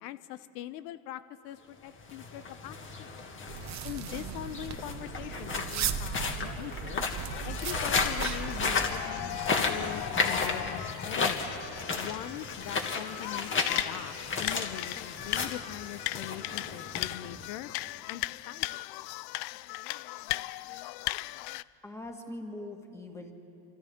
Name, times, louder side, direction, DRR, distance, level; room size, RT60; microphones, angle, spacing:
voice 1, 0.0-3.1 3.8-7.0 7.4-11.5 12.0-17.7 18.1-18.8, left 13 dB, 80° left, 13 dB, 0.9 m, -42 dB
sound 1, 2.0-17.7, left 4 dB, 25° left, 2.1 m, -34 dB
sound 2, 3.5-8.9, right 7 dB, 35° right, 1.1 m, -37 dB
sound 3, 7.2-21.6, left 19 dB, 55° left, 0.5 m, -38 dB
voice 2, 21.8-23.3, left 1 dB, 5° left, 2 dB, 2.2 m, -42 dB
28.0 x 26.0 x 3.7 m, 2.9 s
supercardioid pair, 120°, 48 cm